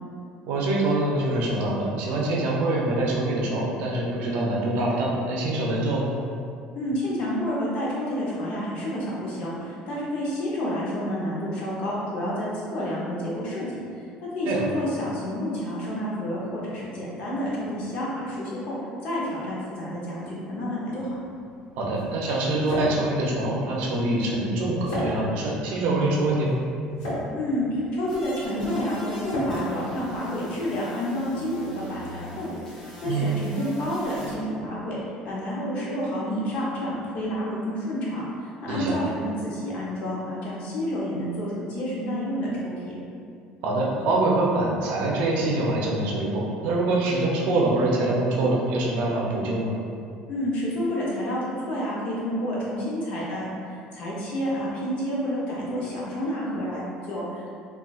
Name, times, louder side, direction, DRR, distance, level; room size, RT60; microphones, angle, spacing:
voice 1, 0.5-6.1 14.5-14.7 21.8-26.6 33.0-33.4 38.7-39.0 43.6-49.7, right 2 dB, 70° right, -2 dB, 0.6 m, -24 dB
voice 2, 6.7-13.8 14.2-18.8 19.0-21.1 27.3-35.0 35.2-42.9 50.3-57.5, equal, 50° left, -6 dB, 0.8 m, -29 dB
sound 1, 21.0-30.8, equal, 70° left, 1.2 m, -35 dB
sound 2, 28.1-34.3, equal, 20° left, 0.6 m, -43 dB
3.6 x 2.4 x 2.4 m, 2.4 s
cardioid pair, 165°, 3 cm